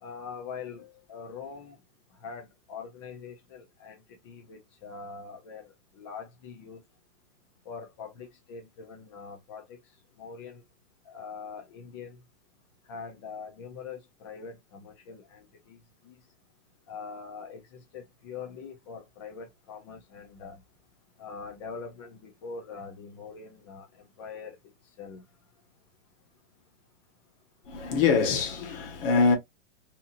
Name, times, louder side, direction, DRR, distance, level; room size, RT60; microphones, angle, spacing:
voice 1, 0.0-1.8 2.2-6.8 7.7-9.8 10.2-10.6 11.1-12.2 12.9-15.8 16.0-16.2 16.9-20.6 21.2-24.6 25.0-25.2, left 5 dB, 25° left, 0.3 m, -43 dB
voice 2, 27.7-29.4, left 5 dB, 50° left, 1.1 m, -24 dB
2.8 x 2.5 x 2.4 m
hypercardioid pair, 145°, 36 cm